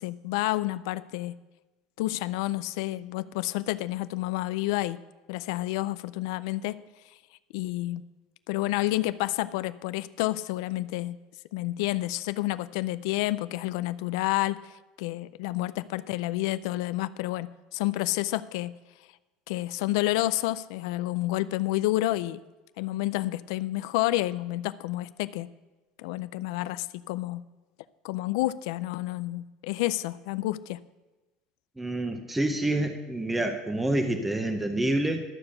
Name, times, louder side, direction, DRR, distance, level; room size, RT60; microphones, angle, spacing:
voice 1, 0.0-1.3 2.0-5.0 5.3-6.8 7.5-8.0 8.5-11.2 11.5-18.7 19.5-22.4 22.8-25.5 26.0-27.4 28.0-30.8, left 17 dB, 80° left, 14 dB, 0.4 m, -29 dB
voice 2, 31.8-35.2, right 1 dB, 5° right, 5 dB, 0.7 m, -27 dB
11.5 x 6.9 x 6.6 m, 1.1 s
cardioid pair, 160°, 3 cm